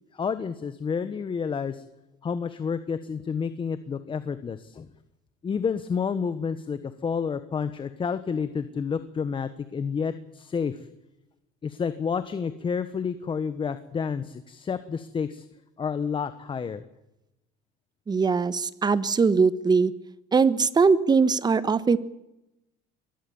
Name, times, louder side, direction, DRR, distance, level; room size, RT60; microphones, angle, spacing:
voice 1, 0.1-1.8 2.2-4.9 5.4-10.8 11.6-15.4 15.8-16.8, left 6 dB, 25° left, 12 dB, 1.3 m, -30 dB
voice 2, 18.1-19.9 20.3-22.0, right 5 dB, 20° right, 16 dB, 1.3 m, -21 dB
24.0 x 19.5 x 7.2 m, 0.91 s
supercardioid pair, 115°, 19 cm